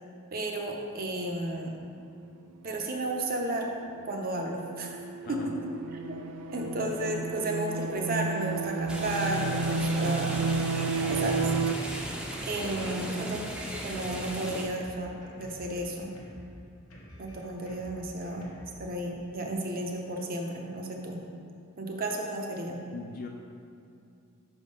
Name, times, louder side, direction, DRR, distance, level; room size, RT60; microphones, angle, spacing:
voice 1, 0.3-1.8 2.6-3.7 4.0-5.4 6.1-6.2 6.5-10.5 11.1-11.4 12.4-13.5 13.8-16.1 17.2-18.5 18.8-21.2 21.8-22.8, right 1 dB, 45° right, 1 dB, 0.7 m, -33 dB
sound 1, 3.0-11.7, right 4 dB, 75° right, 0.3 m, -32 dB
voice 2, 5.2-5.5 13.0-13.4 22.9-23.3, left 4 dB, 45° left, 1 dB, 0.4 m, -41 dB
Drum kit, 8.8-18.8, equal, 90° left, 1.1 m, -49 dB
sound 2, 8.9-14.6, equal, 5° right, 0.6 m, -37 dB
5.6 x 3.6 x 5.3 m, 2.5 s
head